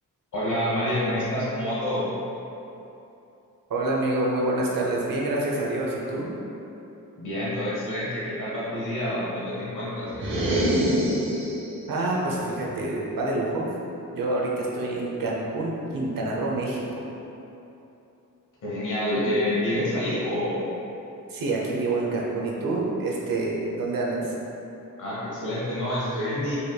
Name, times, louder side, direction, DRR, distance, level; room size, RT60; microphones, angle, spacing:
voice 1, 0.3-2.0 7.2-10.1 18.6-20.7 25.0-26.6, left 1 dB, 65° left, -8 dB, 1.0 m, -27 dB
voice 2, 3.7-6.3 11.9-13.7 14.1-17.0 19.2-19.3 21.3-24.3, right 2 dB, 85° right, -3 dB, 0.7 m, -27 dB
sound 1, 10.1-11.8, equal, 40° right, 0.7 m, -24 dB
4.9 x 3.0 x 2.3 m, 2.9 s
wide cardioid pair, 175°, 33 cm